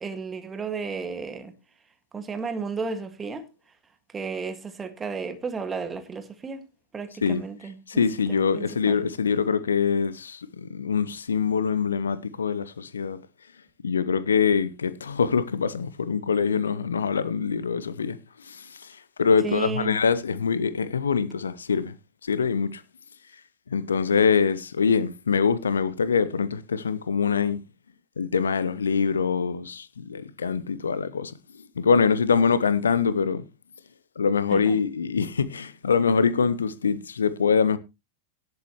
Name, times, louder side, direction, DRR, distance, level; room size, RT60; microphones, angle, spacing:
voice 1, 0.0-1.5 2.1-3.4 4.1-6.6 6.9-8.0 8.3-9.0 19.4-20.0 34.5-34.8, right 5 dB, 15° right, 2.0 m, -33 dB
voice 2, 7.9-13.2 13.8-18.2 18.5-18.7 19.2-21.9 22.2-22.8 23.7-27.6 28.2-31.3 31.8-33.4 34.2-37.8, left 6 dB, 70° left, 0.8 m, -24 dB
18.5 x 7.9 x 3.1 m
figure-of-eight pair, 90°, 0 cm